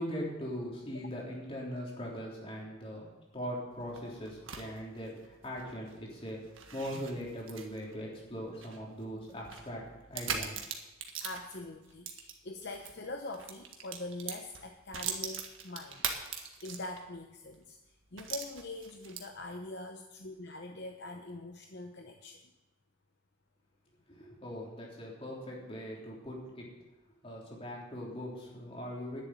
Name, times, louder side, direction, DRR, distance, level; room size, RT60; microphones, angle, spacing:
voice 1, 0.0-6.4 6.7-9.8 10.1-10.6 24.1-26.6 27.2-29.2, equal, 30° left, -3 dB, 3.4 m, -40 dB
sound 1, 3.7-12.9 13.3-17.2 17.5-17.6 18.2-19.5, right 7 dB, 75° right, 1.6 m, -41 dB
voice 2, 11.2-22.4, left 2 dB, 55° left, 4 dB, 0.8 m, -43 dB
11.0 x 7.3 x 9.3 m, 1.0 s
head